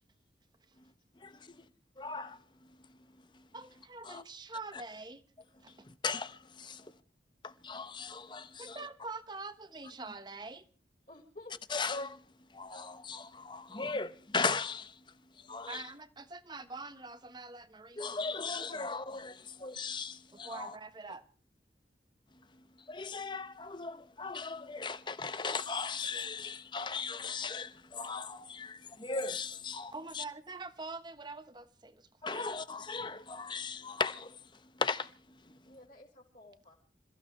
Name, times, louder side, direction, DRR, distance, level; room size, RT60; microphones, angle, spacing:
voice 1, 1.2-1.7 2.0-2.8 3.3-3.5 4.0-4.2 4.7-4.8 5.7-6.9 7.4-8.9 11.7-12.2 12.5-15.9 18.0-20.8 22.5-30.2 32.2-35.7, left 4 dB, 25° left, 0.9 m, -38 dB
voice 2, 3.5-5.2 5.6-5.9 8.6-10.6 15.7-18.2 18.7-18.9 20.4-21.2 29.9-32.5, right 3 dB, 25° right, 1.2 m, -45 dB
voice 3, 11.1-11.6 12.7-12.9 35.7-36.7, left 2 dB, 45° left, 4.3 m, -53 dB
27.5 x 15.5 x 3.2 m
head